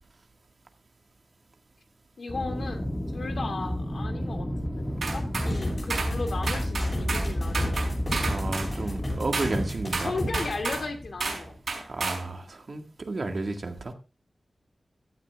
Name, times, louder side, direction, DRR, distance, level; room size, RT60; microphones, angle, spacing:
voice 1, 2.2-4.8 5.1-7.9 10.0-11.5, left 3 dB, 75° left, 2.4 m, -36 dB
Aircraft, 2.3-11.7, equal, 15° left, 1.8 m, -31 dB
sound 1, 5.0-5.5 5.9-6.1 6.5-7.3 7.5-8.7 9.3-9.5 9.9-10.8 11.2-11.4 11.7-12.2, right 4 dB, 80° right, 5.1 m, -31 dB
sound 2, 5.5-10.6, left 1 dB, 30° left, 7.2 m, -35 dB
voice 2, 8.2-10.2 11.8-13.9, right 2 dB, 55° right, 1.8 m, -32 dB
16.0 x 11.5 x 2.4 m
wide cardioid pair, 100°, 0 cm